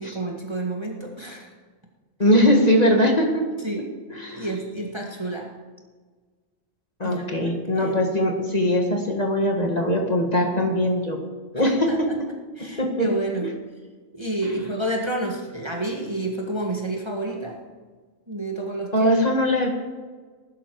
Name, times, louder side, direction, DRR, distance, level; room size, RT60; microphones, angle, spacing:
voice 1, 0.0-1.5 3.6-3.9 4.3-5.5 7.0-7.9 11.9-12.2 12.5-13.5 14.1-17.6 18.3-19.1, right 2 dB, 20° right, 0 dB, 1.7 m, -30 dB
voice 2, 2.2-3.5 4.1-4.5 7.0-11.2 11.5-12.1 12.6-13.1 18.9-19.7, equal, 30° left, 1 dB, 1.8 m, -21 dB
19.5 x 12.0 x 4.7 m, 1.4 s
omnidirectional pair, 1.3 m